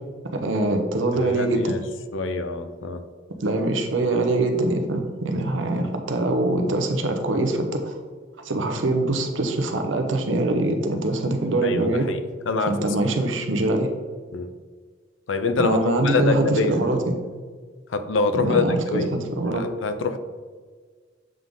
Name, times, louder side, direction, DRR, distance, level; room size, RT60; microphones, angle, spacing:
voice 1, 0.3-1.8 3.4-8.0 8.4-12.0 12.7-13.9 15.6-17.2 18.4-19.7, right 2 dB, 70° right, 5 dB, 0.8 m, -23 dB
voice 2, 1.2-1.8 2.1-3.0 11.6-12.2 12.5-12.9 14.3-14.5 15.3-16.8 17.9-19.1 19.6-20.2, left 3 dB, 70° left, 9 dB, 0.5 m, -25 dB
7.6 x 3.8 x 3.6 m, 1.5 s
head